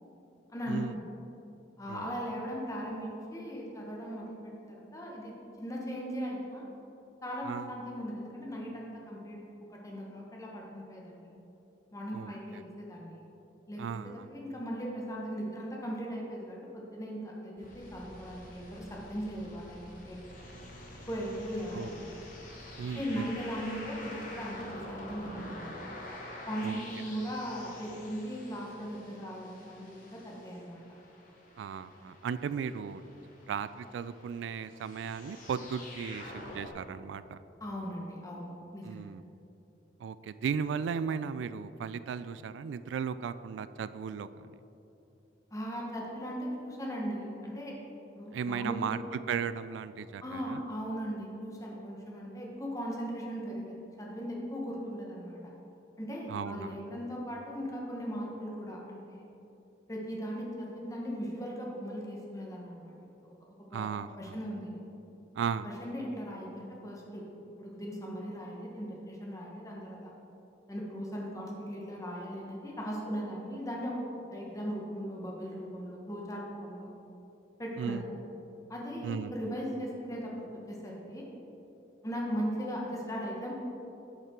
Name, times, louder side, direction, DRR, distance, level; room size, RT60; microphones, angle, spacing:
voice 1, 1.8-6.7 7.2-9.4 9.7-11.3 11.9-13.2 13.7-20.2 21.0-22.2 22.9-25.8 26.5-30.8 37.6-39.0 45.5-47.8 48.1-49.0 50.2-55.4 56.0-59.2 59.9-62.9 63.7-64.8 65.6-67.2 67.6-70.1 70.7-76.9 77.6-78.0 78.7-81.3 82.0-83.5, equal, 20° left, -2 dB, 1.1 m, -38 dB
voice 2, 12.1-12.6 13.8-14.3 21.7-21.9 22.8-23.3 26.6-26.8 31.6-33.0 33.5-37.4 38.8-39.2 40.0-44.5 48.3-50.6 56.3-56.8 63.7-64.4 65.3-65.7 77.8-78.0 79.0-79.3, right 6 dB, 85° right, 14 dB, 0.3 m, -36 dB
sound 1, 17.6-36.7, left 1 dB, 50° left, 1.3 m, -47 dB
10.5 x 5.5 x 3.7 m, 2.9 s
head